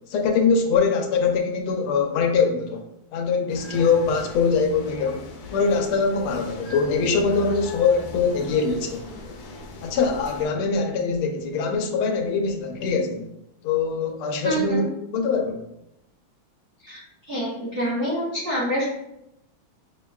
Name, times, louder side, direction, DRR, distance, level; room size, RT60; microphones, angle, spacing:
voice 1, 0.1-2.8 3.1-9.1 9.8-13.3 13.6-15.7, left 5 dB, 90° left, 3 dB, 1.5 m, -23 dB
sound 1, 3.5-10.5, left 3 dB, 70° left, 1.3 m, -39 dB
voice 2, 14.4-14.8 16.8-17.0 17.3-18.8, right 1 dB, 55° right, -7 dB, 0.6 m, -26 dB
5.6 x 2.2 x 2.3 m, 0.83 s
omnidirectional pair, 2.3 m